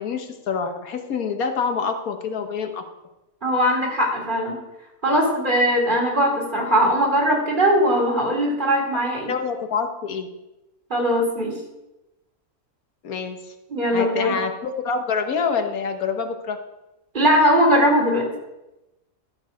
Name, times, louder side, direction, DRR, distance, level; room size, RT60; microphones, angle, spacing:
voice 1, 0.0-2.8 9.3-10.3 13.0-13.5 13.9-16.6, left 5 dB, 90° left, 6 dB, 1.5 m, -26 dB
voice 2, 3.4-4.6 5.0-9.3 10.9-11.5 13.7-14.3 17.1-18.2, equal, 35° right, -2 dB, 2.8 m, -20 dB
13.0 x 7.2 x 5.0 m, 0.98 s
omnidirectional pair, 1.5 m